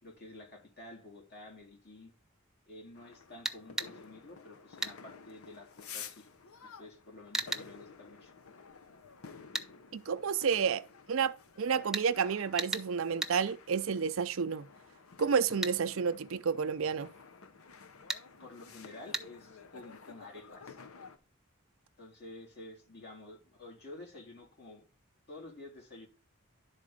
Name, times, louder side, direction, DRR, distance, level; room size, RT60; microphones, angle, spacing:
voice 1, 0.0-2.1 2.7-6.3 6.8-8.3 18.4-20.8 22.0-24.8 25.3-26.1, left 2 dB, 50° left, 3.3 m, -50 dB
sound 1, 2.9-21.2, left 6 dB, 80° left, 0.8 m, -52 dB
sound 2, 3.5-3.9 4.8-5.0 7.3-7.7 9.5-9.7 11.9-12.1 12.6-12.9 13.2-13.4 15.6-15.8 18.1-18.2 19.1-19.2, right 2 dB, ahead, 0.6 m, -34 dB
voice 2, 9.9-14.7 15.2-17.1, right 6 dB, 65° right, 0.5 m, -30 dB
11.5 x 4.2 x 5.0 m
head